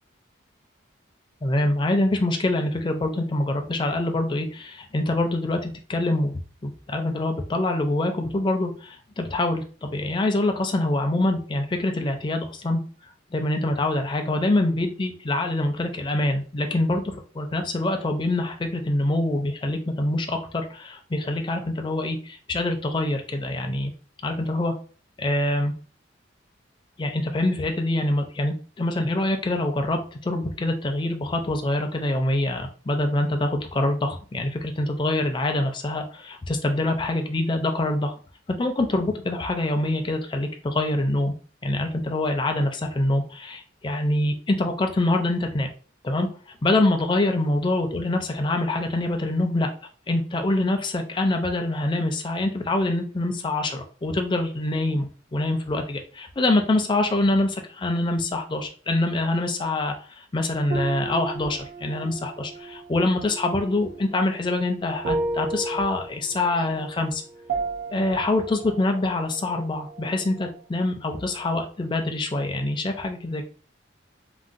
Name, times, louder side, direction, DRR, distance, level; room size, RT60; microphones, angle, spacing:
voice 1, 1.4-12.8 13.3-17.0 17.3-23.9 24.2-24.7 25.2-25.7 27.0-38.1 38.6-41.3 41.6-45.7 46.0-46.3 46.6-49.7 50.1-67.2 67.9-73.4, left 2 dB, 25° left, 4 dB, 0.4 m, -25 dB
sound 1, 60.7-70.6 70.8-71.6, right 3 dB, 45° right, 0.5 m, -34 dB
3.8 x 2.0 x 2.5 m, 0.40 s
head